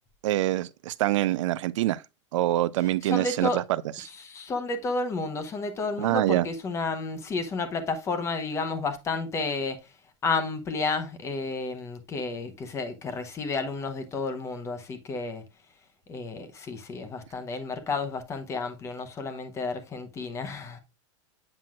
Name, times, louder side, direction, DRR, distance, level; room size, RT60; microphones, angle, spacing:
voice 1, 0.2-2.0 2.3-3.8 6.0-6.5, right 15 dB, 80° right, 0.4 m, -25 dB
voice 2, 3.0-3.6 4.0-9.8 10.2-15.4 16.1-20.8, left 3 dB, 20° left, 0.8 m, -31 dB
7.6 x 5.9 x 2.3 m
supercardioid pair, 155°, 16 cm